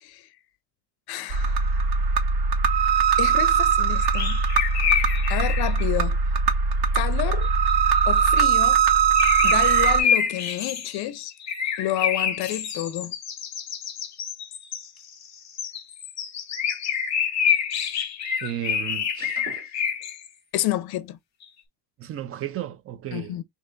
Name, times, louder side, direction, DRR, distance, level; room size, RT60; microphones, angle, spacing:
voice 1, 1.1-1.6 3.2-4.4 5.3-6.2 6.9-7.5 8.1-8.8 9.4-11.3 11.8-13.1 20.5-21.2 23.1-23.4, left 14 dB, 60° left, 0.5 m, -29 dB
sound 1, 1.3-10.0, right 6 dB, 65° right, 0.9 m, -21 dB
sound 2, 4.0-5.8 7.4-7.9 8.2-8.4 9.1-20.3 21.4-21.5, left 8 dB, 40° left, 0.8 m, -27 dB
voice 2, 18.4-19.7 22.0-23.4, right 11 dB, 35° right, 0.4 m, -34 dB
3.3 x 2.9 x 3.7 m
cardioid pair, 175°, 42 cm